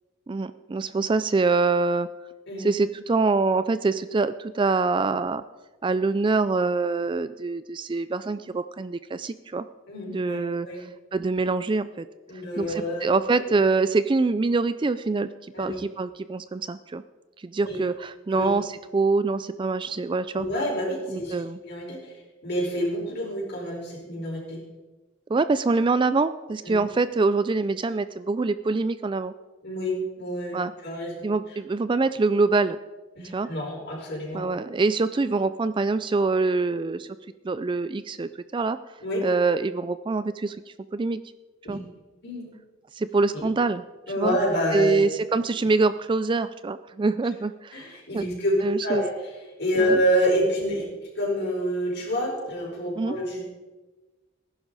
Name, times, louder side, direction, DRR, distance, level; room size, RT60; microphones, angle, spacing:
voice 1, 0.3-2.1 2.6-5.4 5.8-9.6 10.1-12.1 12.6-15.3 15.6-17.0 17.4-20.5 21.1-21.6 25.3-29.3 30.5-30.7 31.2-32.8 33.3-33.5 34.3-37.1 37.4-38.8 39.2-40.6 40.9-41.2 41.7-41.8 42.9-43.8 44.2-44.4 44.7-47.9 48.1-48.2 48.6-49.0 49.8-50.0 53.0-53.2, right 3 dB, 25° right, 13 dB, 0.3 m, -25 dB
voice 2, 9.9-10.8 12.3-13.2 13.5-13.6 15.5-15.8 17.6-17.8 18.3-18.5 20.3-22.1 22.4-24.6 26.6-26.8 29.6-31.2 33.2-34.4 39.0-39.2 41.6-41.8 42.2-42.5 43.3-43.4 44.1-45.0 47.7-49.3 49.6-50.9 51.1-53.4, equal, 55° left, -2 dB, 4.9 m, -28 dB
19.0 x 11.0 x 4.1 m, 1.2 s
head